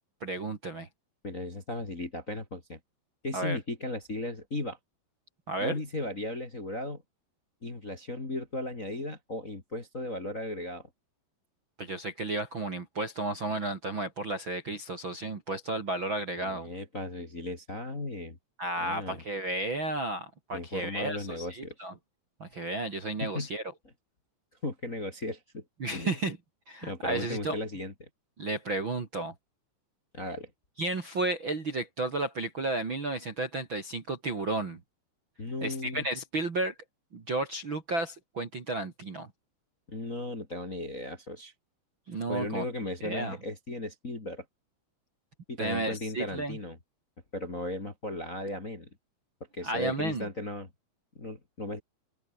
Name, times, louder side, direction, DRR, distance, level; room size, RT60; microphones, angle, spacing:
voice 1, 0.2-0.9 3.3-3.6 5.5-5.8 11.8-16.7 18.6-21.9 22.4-23.6 25.8-26.4 26.7-27.6 28.4-29.3 30.8-34.8 35.6-36.7 37.1-39.3 42.1-42.6 43.0-43.4 45.6-46.6 49.6-50.2, right 2 dB, 35° right, 2.4 m, -33 dB
voice 2, 1.2-2.8 3.2-4.8 5.6-7.0 7.6-10.9 16.4-18.4 18.8-19.2 20.5-21.7 23.2-23.5 24.6-25.6 25.9-26.2 26.8-28.1 30.1-30.5 35.4-36.0 39.9-41.5 42.3-44.4 45.5-46.8 47.3-48.9 49.5-50.7 51.1-51.8, left 2 dB, 20° left, 2.5 m, -36 dB
open air
omnidirectional pair, 5.2 m